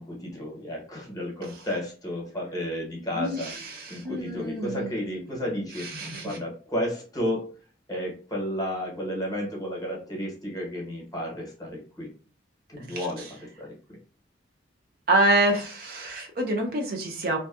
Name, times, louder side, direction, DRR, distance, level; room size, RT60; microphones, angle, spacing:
voice 1, 0.0-3.5 3.9-5.9 6.2-7.5 7.9-12.1 12.7-14.0, left 1 dB, 20° left, -3 dB, 0.9 m, -32 dB
voice 2, 3.1-5.0 5.3-5.4 5.8-6.4 12.9-13.1 15.1-17.4, right 1 dB, 50° right, 1 dB, 0.5 m, -27 dB
2.5 x 2.2 x 2.3 m, 0.38 s
head